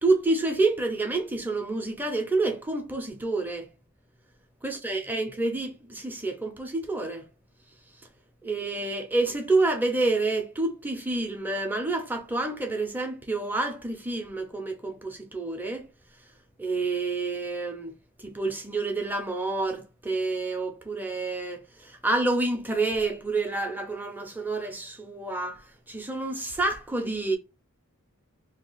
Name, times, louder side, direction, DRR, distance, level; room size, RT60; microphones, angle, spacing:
voice 1, 0.0-3.7 4.6-7.2 8.4-15.9 16.6-17.9 18.2-25.6 25.9-27.4, right 3 dB, 10° right, 0.5 m, -28 dB
2.9 x 2.3 x 3.9 m
head